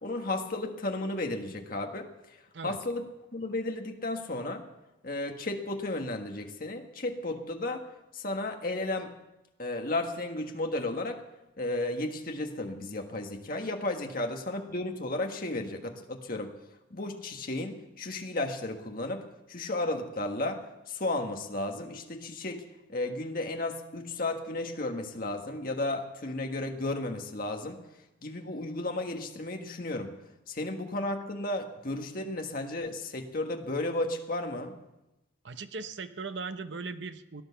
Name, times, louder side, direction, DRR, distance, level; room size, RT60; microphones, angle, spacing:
voice 1, 0.0-2.1 2.6-3.0 3.3-4.6 5.0-7.8 8.1-9.1 9.6-11.2 11.6-16.5 16.9-19.2 19.5-22.6 22.9-27.8 28.2-30.1 30.5-34.8, left 2 dB, 45° left, 3 dB, 1.5 m, -33 dB
voice 2, 35.4-37.4, right 4 dB, 65° right, 11 dB, 0.8 m, -38 dB
17.0 x 11.0 x 6.9 m, 0.96 s
head